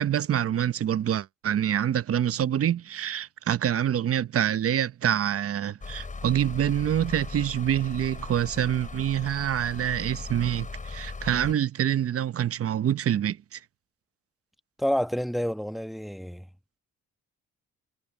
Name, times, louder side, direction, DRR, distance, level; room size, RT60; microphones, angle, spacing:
voice 1, 0.0-13.6, right 10 dB, 50° right, 0.9 m, -26 dB
sound 1, 5.8-11.5, left 3 dB, 25° left, 6.6 m, -38 dB
voice 2, 14.8-16.5, equal, ahead, 1.1 m, -28 dB
cardioid pair, 90°, 30 cm